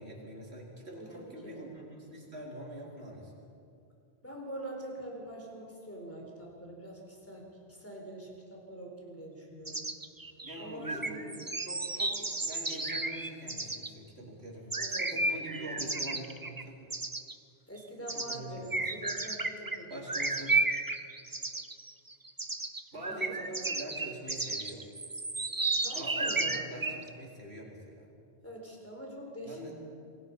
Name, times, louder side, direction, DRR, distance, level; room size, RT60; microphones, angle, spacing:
voice 1, 0.0-3.4 10.4-11.4 11.6-16.9 18.0-18.9 19.9-20.6 22.9-24.9 25.9-28.1 29.4-29.7, right 1 dB, 80° right, -3 dB, 4.4 m, -44 dB
voice 2, 0.9-1.6 4.2-7.4 7.7-9.8 10.6-11.4 14.6-15.0 15.4-15.8 17.7-20.0 23.1-23.4 25.8-27.0 28.4-29.7, right 1 dB, 15° left, -1 dB, 4.4 m, -44 dB
sound 1, 9.7-13.9 14.7-16.6 16.9-17.4 18.1-18.4 18.7-27.1, right 3 dB, 20° right, 0.8 m, -33 dB
27.0 x 19.0 x 5.6 m, 2.4 s
omnidirectional pair, 1.1 m